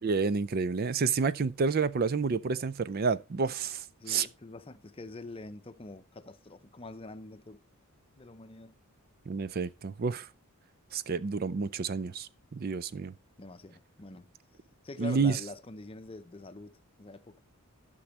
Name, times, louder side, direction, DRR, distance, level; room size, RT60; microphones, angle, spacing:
voice 1, 0.0-4.3 9.3-10.3 10.9-13.1 15.0-15.4, right 5 dB, 45° right, 0.4 m, -29 dB
voice 2, 4.0-7.6 8.2-8.8 13.4-14.3 14.8-17.4, left 2 dB, 25° left, 0.6 m, -45 dB
12.0 x 6.1 x 4.1 m
head